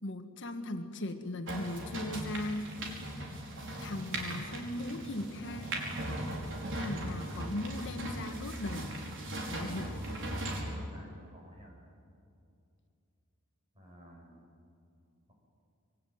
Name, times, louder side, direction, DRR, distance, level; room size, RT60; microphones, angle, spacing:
voice 1, 0.0-2.7 3.8-5.9 6.8-8.9 9.5-10.0, left 1 dB, 55° left, 6 dB, 1.6 m, -38 dB
sound 1, 1.5-10.6, right 1 dB, 60° right, 5.2 m, -38 dB
voice 2, 10.2-11.7 13.7-14.4, equal, 25° right, -1 dB, 7.6 m, -55 dB
26.0 x 24.0 x 9.3 m, 2.5 s
head